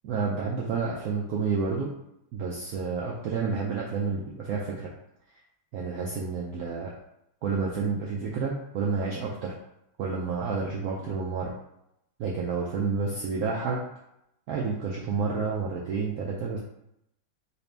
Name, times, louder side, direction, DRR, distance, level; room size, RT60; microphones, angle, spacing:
voice 1, 0.0-1.9 2.3-4.9 5.7-6.9 7.4-9.5 10.0-11.5 12.2-13.8 14.5-16.6, right 4 dB, 85° right, -3 dB, 0.8 m, -30 dB
4.1 x 2.5 x 3.3 m, 0.81 s
omnidirectional pair, 2.2 m